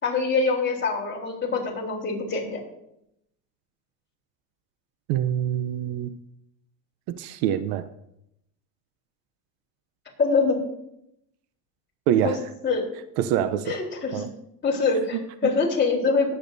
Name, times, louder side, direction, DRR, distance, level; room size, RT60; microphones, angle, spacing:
voice 1, 0.0-2.6 10.2-10.6 12.2-12.3 12.6-12.8 13.7-14.2 14.6-16.3, left 4 dB, 20° left, -2 dB, 3.6 m, -24 dB
voice 2, 5.1-6.1 7.1-7.8 12.1-12.5 13.2-13.8 14.1-14.3 15.1-15.5, right 10 dB, 75° right, 13 dB, 0.8 m, -25 dB
20.0 x 9.0 x 2.7 m, 0.80 s
cardioid pair, 130°, 48 cm